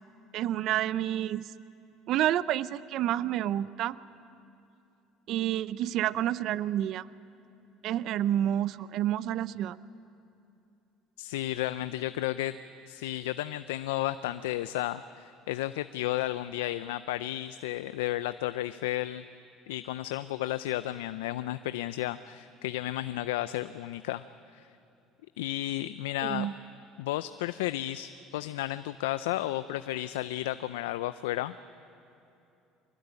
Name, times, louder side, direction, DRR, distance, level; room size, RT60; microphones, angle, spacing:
voice 1, 0.3-1.5 2.1-4.0 5.3-7.1 7.8-9.8 26.2-26.5, right 12 dB, 65° right, 17 dB, 0.6 m, -29 dB
voice 2, 11.2-12.6 12.9-19.2 19.7-24.2 24.5-24.7 25.4-26.5 27.0-31.5, left 15 dB, 90° left, 13 dB, 0.5 m, -33 dB
24.5 x 20.0 x 9.7 m, 2.8 s
supercardioid pair, 80°, 0 cm